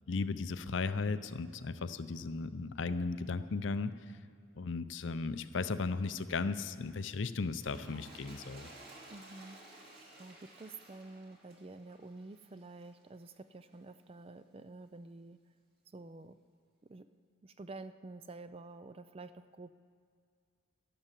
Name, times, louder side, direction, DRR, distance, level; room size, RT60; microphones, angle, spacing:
voice 1, 0.1-3.9 4.6-8.7, left 4 dB, 60° left, 12 dB, 0.6 m, -36 dB
Toilet flush, 7.5-13.0 13.7-13.8, right 2 dB, 45° right, 2.7 m, -55 dB
voice 2, 9.1-9.9 10.2-15.4 15.9-16.4 16.9-17.1 17.4-19.7, right 3 dB, 25° right, 12 dB, 0.4 m, -49 dB
12.0 x 11.0 x 7.5 m, 2.2 s
head